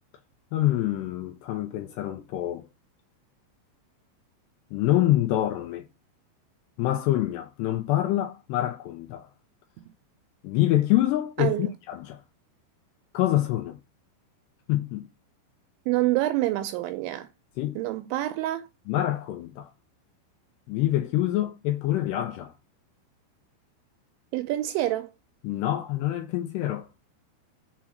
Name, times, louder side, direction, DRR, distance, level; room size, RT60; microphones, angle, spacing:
voice 1, 0.5-2.7 4.7-5.9 6.8-9.3 10.4-12.2 13.1-13.8 14.7-15.1 17.6-17.8 18.9-19.7 20.7-22.5 25.4-26.9, left 14 dB, 85° left, 2.6 m, -26 dB
voice 2, 11.4-11.7 15.9-17.3 17.8-18.7 24.3-25.1, right 15 dB, 80° right, 2.9 m, -27 dB
7.1 x 3.7 x 6.2 m
omnidirectional pair, 5.6 m